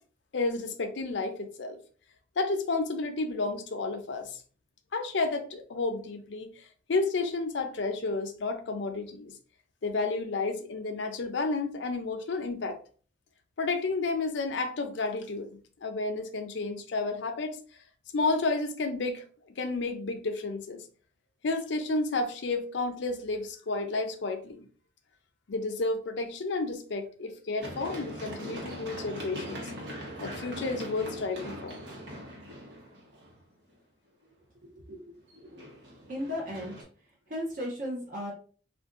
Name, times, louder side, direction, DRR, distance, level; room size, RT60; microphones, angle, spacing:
voice 1, 0.3-1.8 2.4-4.4 4.9-6.6 6.9-9.4 9.8-12.8 13.6-17.6 18.1-19.2 19.6-20.8 21.4-24.7 25.5-29.7 30.2-31.8, left 3 dB, 75° left, 0.5 m, -31 dB
Run, 27.6-33.4 35.3-36.8, equal, 85° right, 1.1 m, -41 dB
voice 2, 34.7-35.7 36.1-36.9 37.3-38.3, equal, 50° right, 0.6 m, -36 dB
2.5 x 2.2 x 3.6 m
head